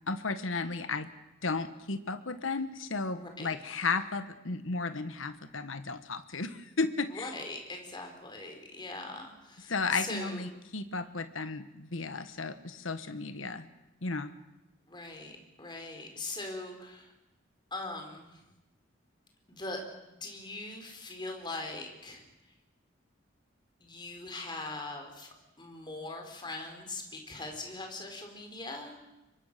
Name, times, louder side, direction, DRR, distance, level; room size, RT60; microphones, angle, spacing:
voice 1, 0.1-1.1 1.4-7.3 9.7-13.7 14.0-14.3, left 4 dB, 80° left, 11 dB, 1.4 m, -34 dB
voice 2, 3.2-3.6 7.1-10.4 14.9-17.1 17.7-18.4 19.5-19.8 20.1-22.2 23.8-25.3 25.6-29.0, left 2 dB, 25° left, 4 dB, 4.2 m, -41 dB
25.5 x 23.0 x 6.7 m, 0.98 s
head